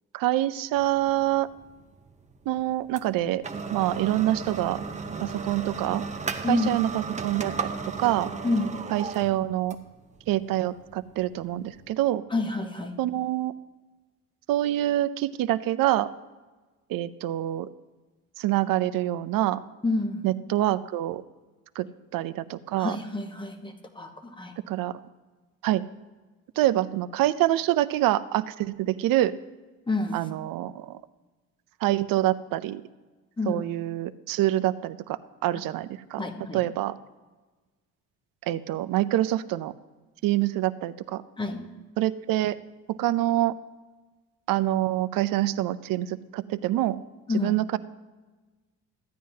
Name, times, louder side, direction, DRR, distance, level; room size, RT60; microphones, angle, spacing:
voice 1, 0.1-1.5 2.5-3.4 3.7-4.8 5.2-6.0 6.5-7.7 8.0-8.3 8.9-9.8 10.3-12.2 13.0-13.5 14.5-16.1 16.9-17.7 18.4-19.6 20.2-21.2 21.8-21.9 22.1-23.0 24.7-25.0 25.6-25.8 26.6-29.3 30.1-31.0 31.8-32.8 33.5-36.2 36.5-37.0 38.4-39.7 40.2-41.2 42.0-42.6 42.9-43.6 44.5-47.0 47.3-47.8, right 14 dB, 70° right, 14 dB, 0.6 m, -26 dB
sound 1, 0.8-12.0, right 5 dB, 20° right, 0.7 m, -36 dB
voice 2, 6.4-6.8 8.4-8.8 12.3-13.0 19.8-20.3 22.8-24.6 29.9-30.2 33.4-33.6 36.2-36.6 41.4-41.6 47.3-47.5, left 2 dB, 15° left, 5 dB, 1.1 m, -28 dB
14.5 x 9.3 x 2.8 m, 1.3 s
cardioid pair, 105°, 35 cm